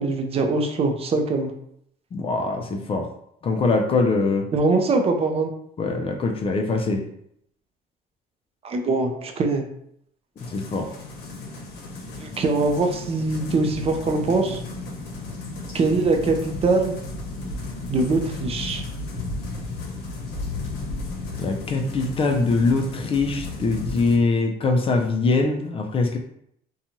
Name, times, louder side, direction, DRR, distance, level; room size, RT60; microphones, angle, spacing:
voice 1, 0.0-1.5 4.5-5.5 8.6-9.7 12.2-14.6 15.7-17.0 17.9-18.8, right 3 dB, 35° right, 4 dB, 0.5 m, -22 dB
voice 2, 2.1-3.1 3.4-4.5 5.8-7.0 10.4-10.9 21.4-26.2, left 3 dB, 35° left, 4 dB, 0.4 m, -23 dB
sound 1, 10.4-24.2, left 2 dB, 90° left, 0.7 m, -34 dB
2.6 x 2.3 x 2.9 m, 0.72 s
cardioid pair, 110°, 17 cm